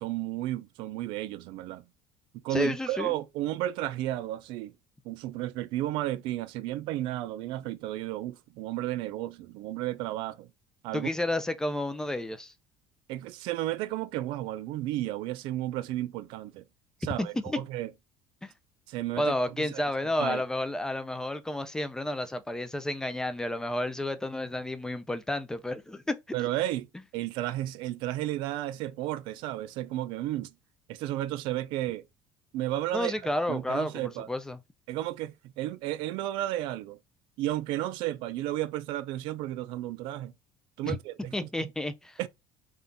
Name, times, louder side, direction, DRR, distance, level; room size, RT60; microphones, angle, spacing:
voice 1, 0.0-1.8 2.4-4.7 5.0-10.5 10.8-11.1 13.1-16.6 17.0-17.9 18.9-19.8 20.2-20.4 26.3-30.5 30.9-32.0 32.5-33.2 33.5-34.3 34.9-37.0 37.4-40.3 40.8-41.5 42.2-42.3, right 14 dB, 70° right, 0.4 m, -33 dB
voice 2, 2.5-3.2 10.9-12.5 17.2-17.6 18.4-18.5 19.2-26.2 32.9-34.6 40.8-41.0 41.3-42.3, left 1 dB, 5° left, 0.3 m, -31 dB
3.6 x 2.3 x 3.8 m
cardioid pair, 165°, 9 cm